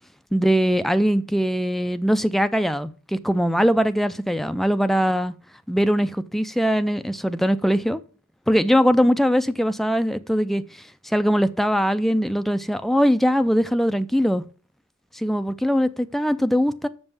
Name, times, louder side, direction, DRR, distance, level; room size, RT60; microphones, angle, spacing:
voice 1, 0.3-5.3 5.7-8.0 8.5-14.4 15.1-16.9, equal, ahead, 0.3 m, -21 dB
7.0 x 5.4 x 7.0 m
head